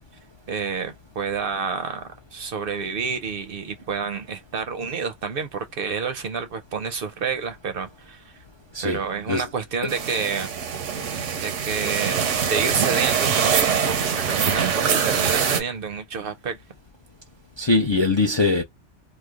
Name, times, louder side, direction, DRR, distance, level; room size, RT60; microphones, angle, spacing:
voice 1, 0.5-8.3 8.8-10.5 11.4-16.6, right 5 dB, 60° right, 0.7 m, -29 dB
voice 2, 8.7-9.4 17.6-18.6, left 3 dB, 40° left, 0.4 m, -22 dB
sound 1, 9.9-15.6, right 7 dB, 85° right, 1.1 m, -23 dB
3.1 x 2.1 x 3.5 m
omnidirectional pair, 1.2 m